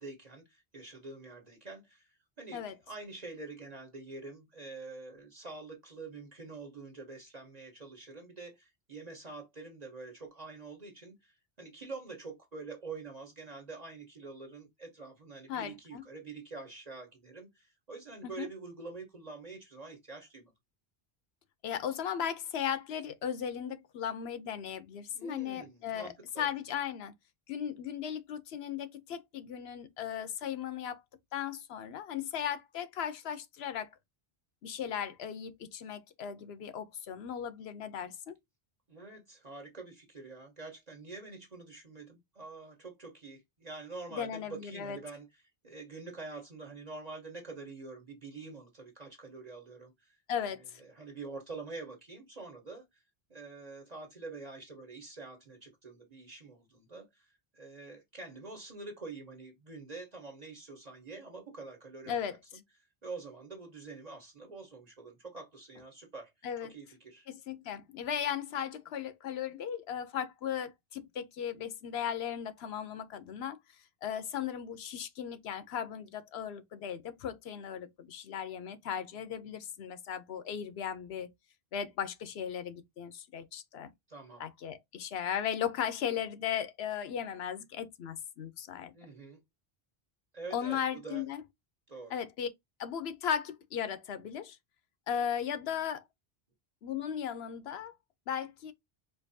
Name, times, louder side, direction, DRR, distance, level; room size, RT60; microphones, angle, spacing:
voice 1, 0.0-20.5 25.1-26.5 38.9-45.3 45.6-50.2 50.4-50.5 50.8-53.0 53.3-62.2 63.0-66.3 66.6-67.3 84.1-84.4 88.9-89.4 90.3-91.2 91.9-92.2, right 3 dB, 45° right, 1.1 m, -46 dB
voice 2, 15.5-16.0 18.2-18.5 21.6-27.1 27.5-31.0 31.3-33.9 34.6-38.4 44.1-45.0 50.3-50.8 62.1-62.4 66.4-66.7 67.3-73.6 74.0-81.3 81.7-83.9 84.4-88.9 90.5-91.4 92.1-92.5 92.8-94.6 95.1-96.0 96.8-97.9 98.3-98.7, left 8 dB, 90° left, 0.9 m, -37 dB
4.4 x 2.6 x 2.6 m
omnidirectional pair, 1.0 m